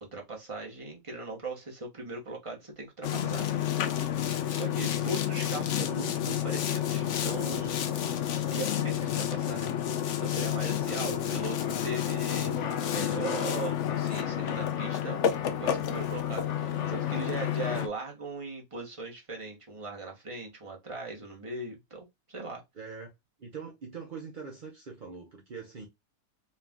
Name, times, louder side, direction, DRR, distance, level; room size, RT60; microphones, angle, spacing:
voice 1, 0.0-3.5 4.5-7.8 8.5-9.7 10.1-22.6, right 3 dB, 20° right, 1.0 m, -39 dB
Boat Water vehicle, 3.0-17.9, left 10 dB, 70° left, 0.7 m, -30 dB
voice 2, 22.8-23.1 23.4-25.9, right 5 dB, 50° right, 0.6 m, -43 dB
4.6 x 2.4 x 3.5 m
omnidirectional pair, 1.9 m